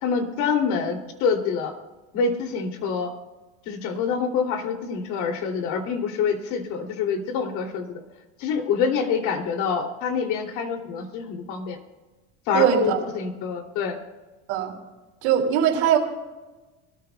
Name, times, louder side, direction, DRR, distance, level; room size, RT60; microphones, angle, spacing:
voice 1, 0.0-1.7 2.1-3.1 3.7-8.0 8.4-11.8 12.5-14.0, left 5 dB, 65° left, 3 dB, 2.9 m, -26 dB
voice 2, 12.5-13.0 14.5-14.7 15.2-16.0, right 9 dB, 80° right, 0 dB, 3.0 m, -20 dB
24.5 x 13.5 x 2.3 m, 1.1 s
supercardioid pair, 120°, 33 cm